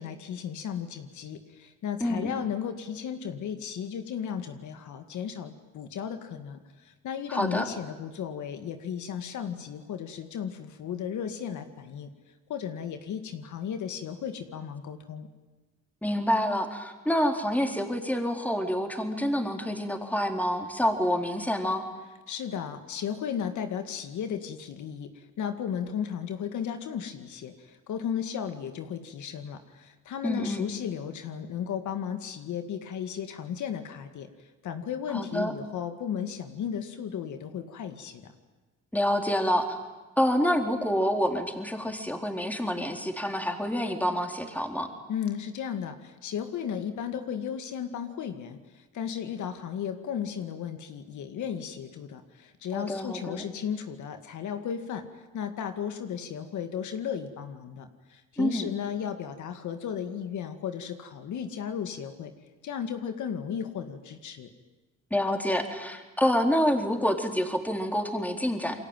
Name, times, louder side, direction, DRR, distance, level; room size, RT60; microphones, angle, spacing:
voice 1, 0.0-12.1 12.5-15.3 22.3-34.3 34.6-38.3 45.1-48.6 48.9-55.0 55.3-62.3 62.6-64.5, left 8 dB, 75° left, 7 dB, 2.2 m, -35 dB
voice 2, 2.0-2.3 7.3-7.7 16.0-21.8 30.2-30.7 35.1-35.5 38.9-39.8 40.2-44.9 52.7-53.4 58.4-58.7 65.1-68.9, equal, 5° left, 4 dB, 4.0 m, -27 dB
29.0 x 22.5 x 9.2 m, 1.2 s
cardioid pair, 90°, 30 cm